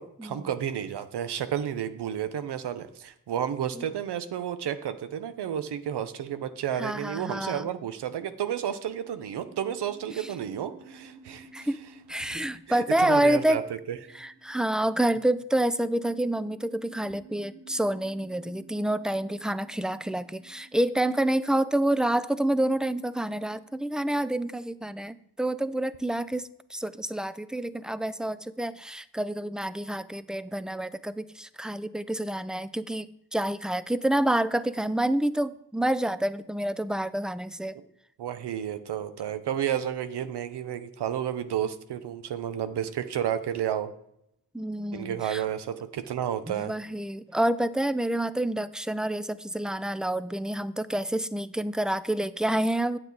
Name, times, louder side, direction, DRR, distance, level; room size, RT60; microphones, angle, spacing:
voice 1, 0.0-11.7 12.2-12.4 12.7-13.6 13.9-14.0 37.7-37.8 38.2-43.9 44.9-46.7, right 9 dB, 90° right, 11 dB, 0.8 m, -31 dB
voice 2, 6.8-7.7 10.1-10.3 11.5-11.8 12.1-13.7 14.1-37.8 44.5-45.4 46.5-53.0, right 1 dB, ahead, 15 dB, 0.4 m, -28 dB
sound 1, 8.3-24.4, right 4 dB, 65° right, 3.3 m, -54 dB
8.8 x 8.5 x 4.0 m, 0.76 s
cardioid pair, 70°, 39 cm